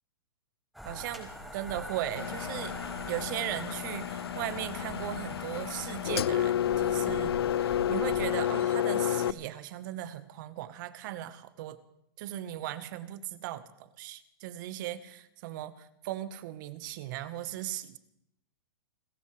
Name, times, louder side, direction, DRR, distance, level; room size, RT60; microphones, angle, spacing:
sound 1, 0.7-8.2, equal, ahead, 4.8 m, -44 dB
voice 1, 0.8-2.8 3.1-11.8 12.2-18.0, right 13 dB, 50° right, 14 dB, 1.1 m, -38 dB
Engine, 2.1-9.3, left 10 dB, 80° left, 0.5 m, -30 dB
30.0 x 14.0 x 3.2 m, 0.78 s
hypercardioid pair, 125°, 13 cm